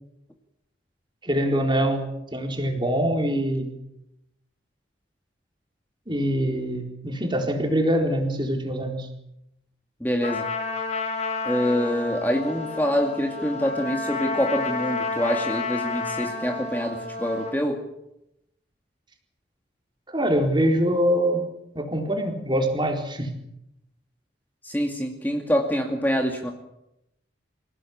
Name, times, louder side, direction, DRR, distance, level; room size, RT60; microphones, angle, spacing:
voice 1, 1.2-3.7 6.1-9.1 20.1-21.4 21.7-23.3, equal, 25° right, 3 dB, 4.2 m, -24 dB
voice 2, 10.0-10.5 11.4-17.8 24.6-26.5, equal, 10° left, 2 dB, 2.3 m, -25 dB
Trumpet, 10.2-17.6, left 4 dB, 35° left, 5.5 m, -30 dB
27.5 x 17.5 x 8.8 m, 0.86 s
head